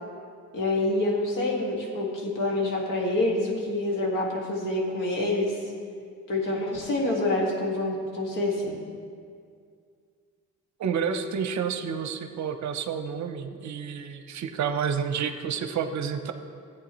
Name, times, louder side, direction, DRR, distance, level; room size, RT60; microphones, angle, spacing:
voice 1, 0.5-5.6 6.3-8.8, left 2 dB, 80° left, -1 dB, 2.0 m, -27 dB
voice 2, 10.8-16.3, right 7 dB, 60° right, 8 dB, 0.7 m, -30 dB
14.0 x 8.8 x 3.1 m, 2.2 s
cardioid pair, 100°, 32 cm